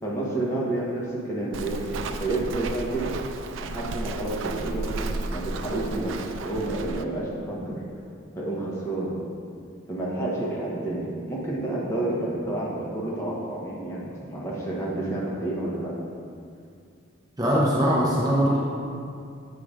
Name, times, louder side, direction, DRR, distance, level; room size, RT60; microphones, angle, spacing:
voice 1, 0.0-3.1 3.6-7.8 8.3-9.1 9.9-15.9, right 2 dB, 15° left, -5 dB, 1.1 m, -30 dB
Walk footsteps, 1.5-7.0, right 3 dB, 75° right, 0.4 m, -33 dB
voice 2, 17.4-18.6, equal, 20° right, -6 dB, 0.7 m, -21 dB
7.1 x 3.8 x 5.0 m, 2.4 s
head